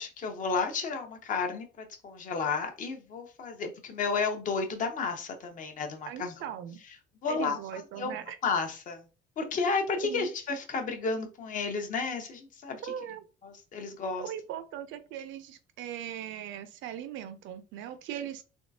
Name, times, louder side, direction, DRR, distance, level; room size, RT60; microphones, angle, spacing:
voice 1, 0.0-6.3 7.2-7.6 8.0-8.1 8.4-9.0 9.4-12.9 13.4-14.3, left 4 dB, 40° left, 5 dB, 0.7 m, -32 dB
voice 2, 6.1-6.8 7.3-8.4 10.0-10.3 12.8-13.2 14.2-18.4, right 10 dB, 70° right, 10 dB, 0.6 m, -39 dB
3.5 x 3.1 x 2.6 m, 0.33 s
cardioid pair, 170°, 21 cm